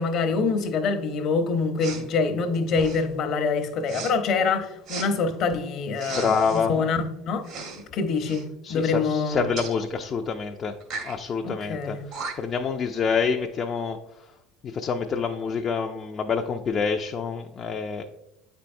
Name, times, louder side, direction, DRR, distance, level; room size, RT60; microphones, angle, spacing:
voice 1, 0.0-7.4 7.9-9.5 11.4-12.1, left 4 dB, 55° left, 0.8 m, -25 dB
Respiratory sounds, 1.8-2.1 2.7-3.1 3.9-4.1 4.9-5.1 5.9-6.6 7.4-7.8 8.1-8.4 9.6-9.7 10.8-11.2 11.8-11.9 12.1-12.6, right 4 dB, 65° right, 1.3 m, -36 dB
voice 2, 6.1-6.8 8.7-10.7 11.0-12.0 12.4-14.0 14.7-18.0, left 5 dB, 40° left, 0.4 m, -27 dB
8.2 x 4.5 x 2.6 m
hypercardioid pair, 85°, 0 cm